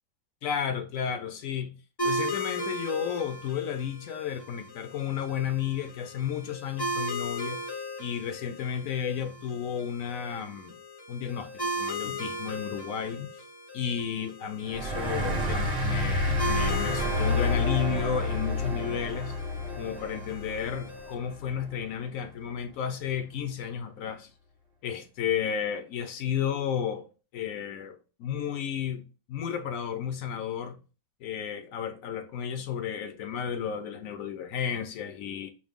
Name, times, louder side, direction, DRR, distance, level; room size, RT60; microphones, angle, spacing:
voice 1, 0.4-1.7 2.0-7.6 8.0-10.8 11.1-13.4 13.7-19.4 19.8-24.3 24.8-27.1 27.3-29.0 29.3-30.8 31.2-35.5, left 8 dB, 75° left, 1.0 m, -32 dB
sound 1, 2.0-21.1, equal, 25° left, 0.5 m, -37 dB
sound 2, 14.7-21.8, left 2 dB, 35° right, 0.9 m, -29 dB
4.9 x 2.1 x 3.5 m
omnidirectional pair, 1.5 m